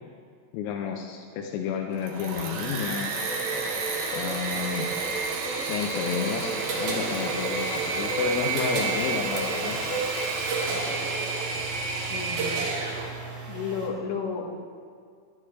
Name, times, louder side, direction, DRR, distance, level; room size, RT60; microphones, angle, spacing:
voice 1, 0.5-3.1 4.1-4.9 5.7-9.8, left 7 dB, 85° left, 2 dB, 3.3 m, -31 dB
Engine / Mechanisms, 1.9-13.1, right 4 dB, 85° right, 2.0 m, -31 dB
sound 1, 3.1-11.7, right 3 dB, 50° left, 1.7 m, -35 dB
sound 2, 6.5-13.9, right 3 dB, 65° right, 2.0 m, -35 dB
voice 2, 12.1-12.6 13.0-13.2 13.5-14.5, left 6 dB, 70° left, -4 dB, 3.4 m, -32 dB
11.0 x 11.0 x 3.3 m, 2.2 s
omnidirectional pair, 5.8 m